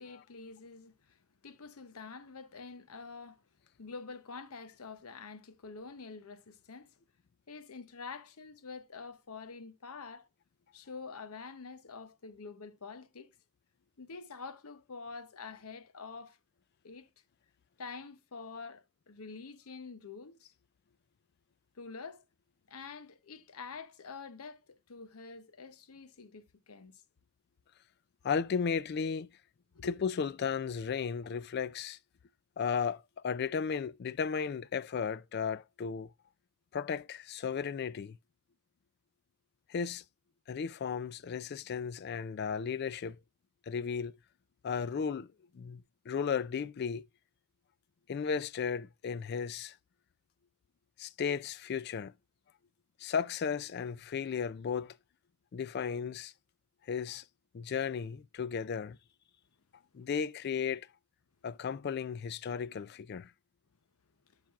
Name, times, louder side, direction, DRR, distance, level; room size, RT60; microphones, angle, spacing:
voice 1, 0.0-3.4 3.8-6.9 7.5-10.3 10.7-13.3 14.0-16.4 16.8-17.1 17.8-20.5 21.7-22.2 22.7-27.0 29.7-30.0, left 4 dB, 85° left, 0.8 m, -47 dB
voice 2, 28.2-29.3 29.8-32.0 32.6-36.1 36.7-38.2 39.7-40.0 40.5-43.2 43.7-44.1 44.6-45.3 45.5-47.0 48.1-49.8 51.0-52.1 53.0-55.0 55.5-56.3 56.9-57.2 57.5-59.0 59.9-60.9 61.4-63.3, left 6 dB, 45° left, 0.3 m, -35 dB
10.5 x 6.0 x 2.4 m
head